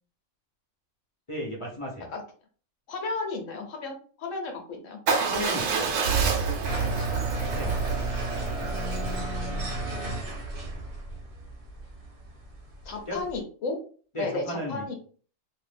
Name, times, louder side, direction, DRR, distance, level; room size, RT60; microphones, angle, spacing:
voice 1, 1.3-2.1 5.3-6.0 7.5-7.7 13.1-13.2 14.1-14.9, equal, 30° left, -3 dB, 0.9 m, -34 dB
voice 2, 2.9-5.0 6.7-7.6 8.6-9.7 12.8-13.8 14.2-14.9, left 3 dB, 80° left, 3 dB, 1.2 m, -35 dB
Motorcycle / Engine starting / Idling, 5.1-9.2, right 5 dB, 85° right, 1.0 m, -28 dB
sound 1, 6.6-13.4, right 2 dB, 50° right, 1.0 m, -33 dB
2.6 x 2.5 x 3.3 m, 0.41 s
omnidirectional pair, 1.3 m